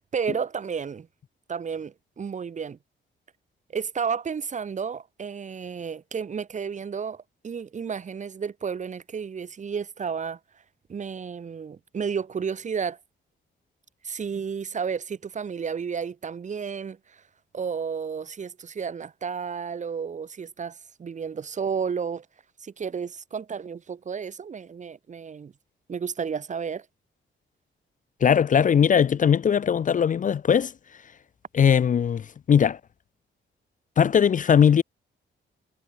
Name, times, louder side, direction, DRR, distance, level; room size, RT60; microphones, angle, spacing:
voice 1, 0.1-1.1 1.5-2.8 3.7-10.4 10.9-13.0 14.0-17.2 17.5-22.3 22.6-25.5 25.9-26.8, right 6 dB, 35° right, 1.0 m, -32 dB
voice 2, 28.2-30.7 31.5-32.8 34.0-34.8, left 8 dB, 40° left, 0.5 m, -19 dB
wide cardioid pair, 130°, 20 cm